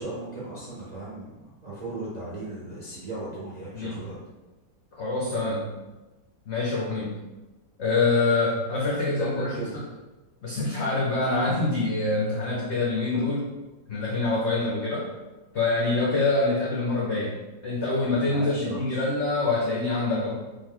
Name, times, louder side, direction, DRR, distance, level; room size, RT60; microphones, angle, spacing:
voice 1, 0.0-4.1 9.1-9.8 18.2-19.0, right 2 dB, 50° right, -7 dB, 0.5 m, -36 dB
voice 2, 4.9-5.7 6.5-7.2 7.8-9.8 10.4-13.5 13.9-15.1 15.5-17.3 17.6-20.3, left 3 dB, 65° left, -4 dB, 0.7 m, -25 dB
3.6 x 2.6 x 3.7 m, 1.1 s
omnidirectional pair, 1.9 m